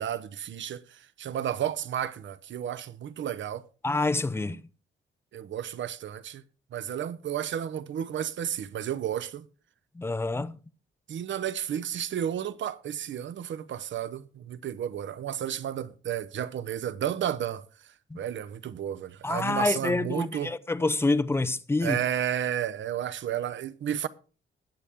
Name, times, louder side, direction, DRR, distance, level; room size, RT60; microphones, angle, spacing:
voice 1, 0.0-3.6 5.3-6.4 6.7-9.5 11.1-17.6 18.1-20.5 21.8-24.1, right 10 dB, 70° right, 0.8 m, -32 dB
voice 2, 3.8-4.7 9.9-10.6 18.1-18.2 19.2-22.0, left 3 dB, 10° left, 0.6 m, -27 dB
20.5 x 7.1 x 3.5 m
cardioid pair, 115°, 20 cm